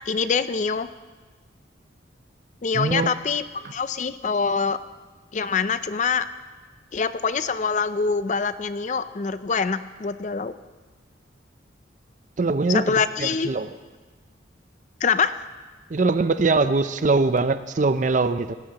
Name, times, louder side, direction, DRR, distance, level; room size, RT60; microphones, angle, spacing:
voice 1, 0.1-0.9 2.6-4.8 5.3-6.3 6.9-10.5 12.7-13.5 15.0-15.3, left 5 dB, 40° left, 13 dB, 0.4 m, -24 dB
voice 2, 2.7-3.1 12.4-12.8 13.2-13.7 15.9-18.5, right 3 dB, 40° right, 12 dB, 0.5 m, -22 dB
17.5 x 17.5 x 2.9 m, 1.3 s
head